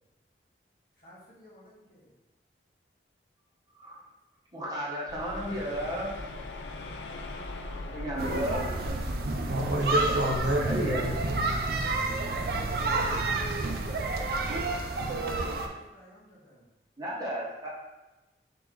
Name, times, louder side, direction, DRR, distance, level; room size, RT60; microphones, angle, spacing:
voice 1, 1.0-2.1 7.8-8.1 14.7-16.6, equal, 50° left, -6 dB, 1.4 m, -54 dB
voice 2, 4.5-6.1 7.9-8.6 10.6-11.4 17.0-17.7, equal, 20° right, -6 dB, 1.1 m, -33 dB
sound 1, 5.1-12.2, left 2 dB, 80° left, 0.5 m, -41 dB
childrens playground recreation fun park pleasure ground, 8.2-15.7, right 2 dB, 55° right, 0.4 m, -30 dB
voice 3, 9.4-11.6, right 1 dB, 80° right, 1 dB, 0.8 m, -29 dB
4.2 x 3.3 x 3.8 m, 1.0 s
head